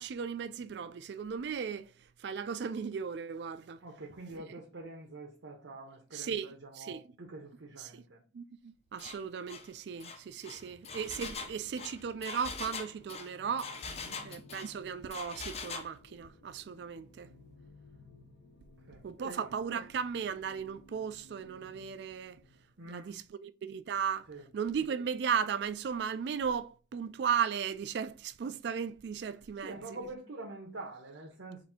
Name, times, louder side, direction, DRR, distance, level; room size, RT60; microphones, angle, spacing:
voice 1, 0.0-1.9 2.2-3.8 4.3-4.4 6.1-7.0 7.8-8.0 8.3-13.8 14.2-17.3 19.0-22.4 22.9-24.3 24.5-30.0, right 7 dB, 65° right, 0.3 m, -36 dB
voice 2, 3.8-8.2 13.9-14.2 18.9-19.5 22.8-23.1 24.3-24.5 29.5-31.6, right 2 dB, 85° right, 0.9 m, -46 dB
Engine, 9.0-9.2 9.5-9.7 10.0-14.7 15.1-15.9, left 4 dB, 35° left, 0.5 m, -42 dB
sound 1, 10.9-22.8, left 2 dB, 75° left, 0.6 m, -59 dB
4.1 x 2.6 x 4.2 m
head